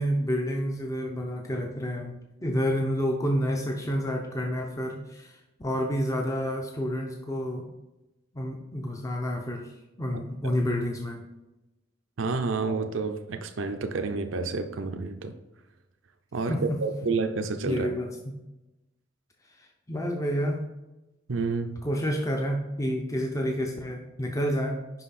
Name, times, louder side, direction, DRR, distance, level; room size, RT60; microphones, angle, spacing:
voice 1, 0.0-2.2 2.4-7.7 8.3-11.3 16.5-16.8 17.6-18.4 19.5-20.6 21.8-24.8, equal, 15° left, 1 dB, 0.6 m, -29 dB
voice 2, 10.1-10.5 12.2-15.3 16.3-17.9 21.3-21.8, right 4 dB, 75° right, 7 dB, 0.6 m, -30 dB
5.6 x 5.4 x 4.2 m, 0.99 s
head